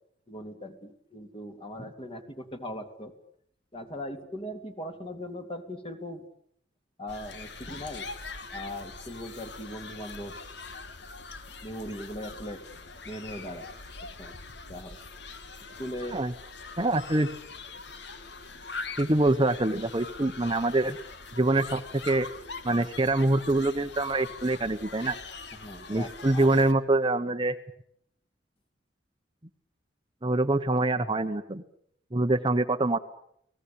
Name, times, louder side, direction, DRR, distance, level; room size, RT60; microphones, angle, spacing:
voice 1, 0.3-3.1 3.7-6.3 7.0-8.1 8.5-10.4 11.3-12.6 13.0-13.7 14.0-14.4 14.7-15.0 15.8-16.2 25.5-26.5, equal, 30° left, 6 dB, 2.9 m, -39 dB
sound 1, 7.1-26.7, left 4 dB, 65° left, 2.0 m, -43 dB
voice 2, 16.8-17.3 19.0-21.0 21.4-22.3 22.6-25.2 25.9-27.5 30.2-31.6 32.1-33.0, right 2 dB, 25° right, 8 dB, 1.0 m, -25 dB
29.5 x 19.0 x 8.7 m, 0.71 s
head